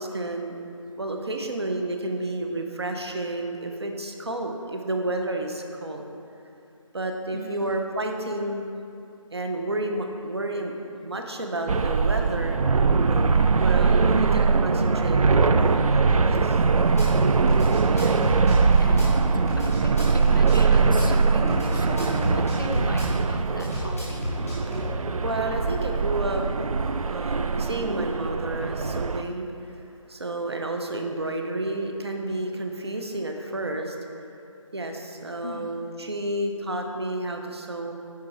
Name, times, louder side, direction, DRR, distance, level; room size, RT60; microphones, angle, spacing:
voice 1, 0.0-6.1 6.9-8.7 9.3-10.7 11.0-12.6 13.6-16.1 16.4-16.6 24.7-29.8 30.1-34.0 34.7-37.9, right 2 dB, 50° right, 3 dB, 0.8 m, -31 dB
voice 2, 7.3-7.7 14.0-14.4 17.8-24.3 35.4-35.8, left 1 dB, 40° left, 4 dB, 0.4 m, -37 dB
sound 1, 11.7-29.2, right 4 dB, 85° right, 0.4 m, -22 dB
Drum kit / Bass drum, 17.0-17.1 17.5-19.1 19.5-21.1 21.5-23.1 23.6-24.9, left 1 dB, 5° right, 0.6 m, -30 dB
9.6 x 4.9 x 4.4 m, 2.6 s
figure-of-eight pair, 175°, 17 cm